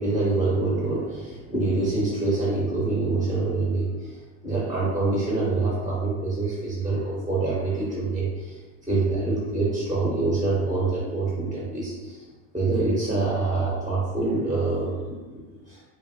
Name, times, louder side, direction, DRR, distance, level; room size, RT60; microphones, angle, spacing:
voice 1, 0.0-3.9 4.4-8.3 8.9-12.1 12.5-15.2, right 3 dB, 10° right, -7 dB, 0.6 m, -25 dB
3.3 x 2.0 x 2.6 m, 1.3 s
supercardioid pair, 125°, 44 cm